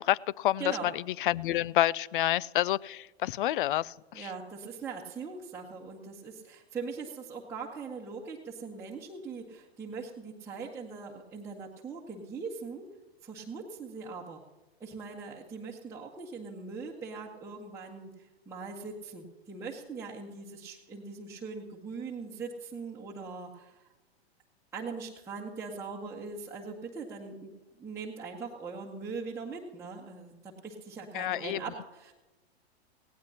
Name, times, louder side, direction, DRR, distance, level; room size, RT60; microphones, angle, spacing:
voice 1, 0.0-4.3 31.1-31.6, left 14 dB, 55° left, 23 dB, 0.4 m, -29 dB
voice 2, 4.1-12.9 13.2-14.4 14.8-18.1 18.4-23.8 24.7-32.1, right 4 dB, 10° right, -5 dB, 1.6 m, -41 dB
18.5 x 17.0 x 2.9 m, 1.1 s
figure-of-eight pair, 110°, 32 cm